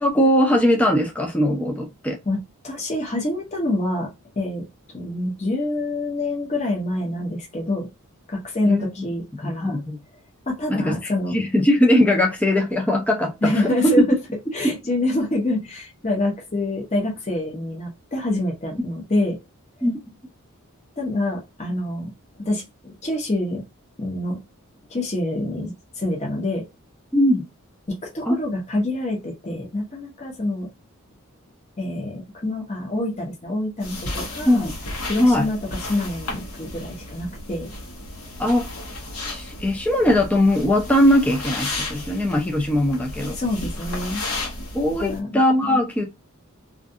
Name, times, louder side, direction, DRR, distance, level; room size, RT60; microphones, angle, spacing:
voice 1, 0.0-2.2 8.7-8.9 9.4-10.0 10.7-13.8 19.8-20.0 27.1-27.4 28.3-28.4 34.5-34.8 35.2-35.5 38.4-38.7 39.2-43.4 44.7-46.0, left 1 dB, 5° left, 0.3 m, -20 dB
voice 2, 2.6-4.1 4.4-4.6 4.9-7.9 8.3-9.8 10.5-11.4 13.4-14.2 14.5-19.4 21.0-22.1 22.4-23.6 24.0-24.4 24.9-26.7 27.9-30.7 31.8-34.6 35.1-35.6 35.9-37.7 43.3-44.2 45.0-45.4 45.7-45.8, left 1 dB, 30° left, 0.7 m, -26 dB
sound 1, 33.8-45.2, left 2 dB, 90° left, 0.9 m, -33 dB
2.4 x 2.3 x 2.6 m
head